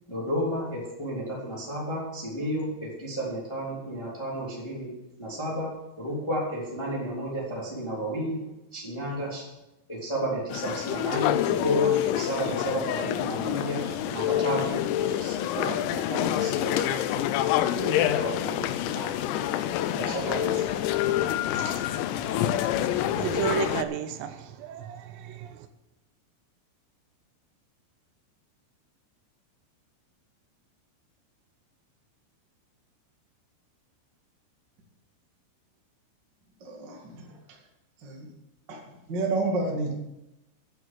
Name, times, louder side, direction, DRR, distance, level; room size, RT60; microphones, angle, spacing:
voice 1, 0.1-4.9 5.2-5.7 6.0-8.4 8.7-9.4 9.9-17.3 17.7-19.2 19.9-21.1 21.4-21.8, equal, 10° left, -5 dB, 1.9 m, -32 dB
sound 1, 10.5-23.8, left 12 dB, 85° left, 3.4 m, -27 dB
voice 2, 22.2-25.7, right 9 dB, 85° right, 9 dB, 3.6 m, -34 dB
voice 3, 36.6-37.4 38.0-38.3 38.7-38.8 39.1-40.0, right 2 dB, 55° right, -1 dB, 1.2 m, -30 dB
9.3 x 9.1 x 7.7 m, 0.94 s
omnidirectional pair, 6.0 m